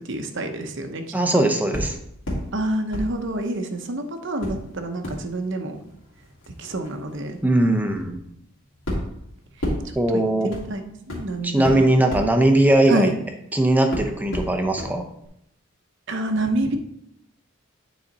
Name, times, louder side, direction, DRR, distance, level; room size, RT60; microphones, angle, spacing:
voice 1, 0.1-1.0 1.3-1.4 2.5-5.8 6.6-7.4 10.1-10.8 11.1-11.9 12.9-13.2 16.1-16.8, right 1 dB, 55° right, 6 dB, 0.8 m, -27 dB
voice 2, 1.1-1.9 7.4-8.2 10.0-10.5 11.4-13.1 13.5-15.0, right 1 dB, 10° right, 4 dB, 0.6 m, -19 dB
sound 1, 1.7-2.5 2.9-3.9 4.4-13.5 13.9-14.9 15.2-15.3, equal, 65° left, 2.4 m, -33 dB
9.2 x 4.2 x 4.1 m, 0.77 s
head